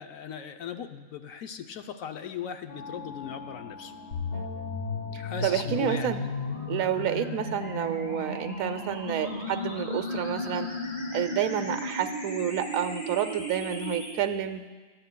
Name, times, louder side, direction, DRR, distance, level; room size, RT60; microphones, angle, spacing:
voice 1, 0.0-3.9 5.2-6.3, left 7 dB, 80° left, 7 dB, 1.1 m, -38 dB
sound 1, 2.7-11.8, left 2 dB, 30° left, 3.7 m, -44 dB
sound 2, 4.1-14.1, left 2 dB, 50° left, 2.2 m, -35 dB
voice 2, 4.3-4.7 5.1-6.2 6.7-10.7 11.1-14.9, right 9 dB, 85° right, 10 dB, 1.1 m, -30 dB
19.0 x 13.5 x 2.2 m, 1.4 s
omnidirectional pair, 1.4 m